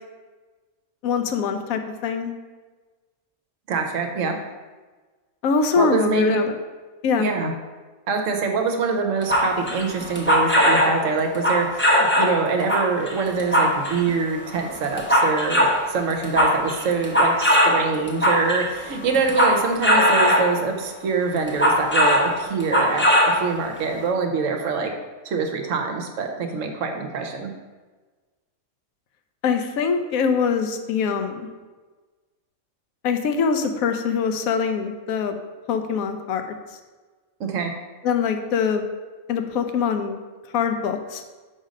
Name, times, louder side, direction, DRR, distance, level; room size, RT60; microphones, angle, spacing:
voice 1, 1.0-2.3 5.4-6.5 7.0-7.3 29.4-31.5 33.0-35.4 35.7-36.4 38.0-38.8 39.3-40.2 40.5-41.2, left 6 dB, 80° left, 7 dB, 1.0 m, -23 dB
voice 2, 3.7-4.4 5.8-6.4 7.2-7.5 8.1-24.9 25.2-27.5 37.4-37.7, right 4 dB, 65° right, 3 dB, 1.0 m, -25 dB
sound 1, 9.2-11.0 11.3-12.4 12.7-14.1 14.6-15.8 16.1-18.7 19.1-20.6 21.4-22.3 22.6-23.4 23.8-23.9, equal, 15° left, 0.5 m, -19 dB
5.2 x 4.0 x 5.1 m, 1.3 s
omnidirectional pair, 1.5 m